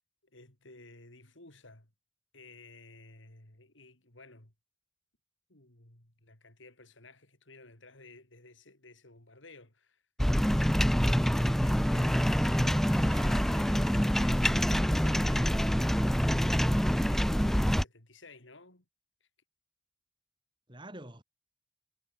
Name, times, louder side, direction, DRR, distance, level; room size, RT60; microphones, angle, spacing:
voice 1, 0.3-1.9 2.3-4.5 5.5-10.0 11.3-15.8 16.1-18.8, left 2 dB, 75° left, 4.5 m, -54 dB
sound 1, 10.2-17.8, equal, ahead, 0.4 m, -26 dB
voice 2, 12.4-13.6 20.7-21.2, right 1 dB, 25° right, 6.9 m, -47 dB
head